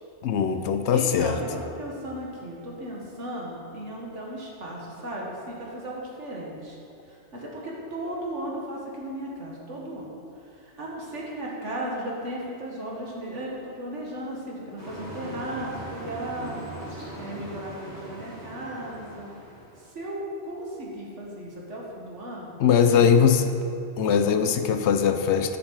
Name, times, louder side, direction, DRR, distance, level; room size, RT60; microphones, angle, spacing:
voice 1, 0.2-1.4 22.6-23.5 24.0-25.6, left 7 dB, 70° left, 8 dB, 0.9 m, -21 dB
voice 2, 0.9-6.8 7.1-10.1 10.5-16.6 17.2-19.3 19.8-23.4 24.2-24.4, right 1 dB, 75° right, -3 dB, 2.0 m, -36 dB
sound 1, 14.8-19.9, right 1 dB, 35° right, 2.6 m, -40 dB
11.5 x 6.4 x 4.8 m, 2.6 s
omnidirectional pair, 1.2 m